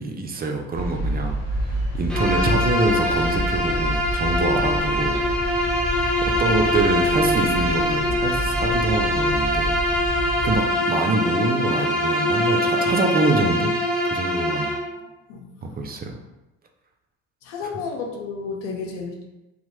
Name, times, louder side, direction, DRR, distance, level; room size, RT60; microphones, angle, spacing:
voice 1, 0.0-5.2 5.6-5.9 6.2-9.7 10.0-13.7 14.0-14.8 15.6-16.2 17.6-17.7, right 3 dB, 30° right, 3 dB, 0.4 m, -26 dB
sound 1, 0.7-10.6, equal, 45° left, 0.8 m, -29 dB
Bowed string instrument, 2.1-14.9, left 1 dB, 5° left, 0.7 m, -23 dB
voice 2, 17.4-19.2, left 5 dB, 85° left, 2 dB, 0.6 m, -31 dB
2.8 x 2.0 x 3.1 m, 1.0 s
hypercardioid pair, 65°, 34 cm